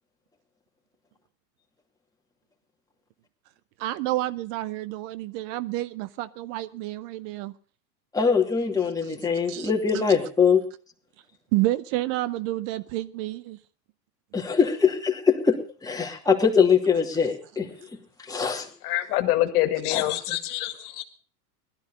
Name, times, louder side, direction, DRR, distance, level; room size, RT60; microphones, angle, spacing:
voice 1, 3.8-7.5 8.8-9.1 9.5-10.0 11.5-13.6, right 16 dB, 50° right, 0.7 m, -29 dB
voice 2, 8.1-10.6 14.3-15.6 15.8-17.7 18.3-18.7 19.9-20.0, left 6 dB, 5° left, 2.6 m, -22 dB
voice 3, 18.8-21.0, left 15 dB, 65° left, 2.0 m, -25 dB
16.5 x 12.5 x 5.3 m
hypercardioid pair, 110°, 49 cm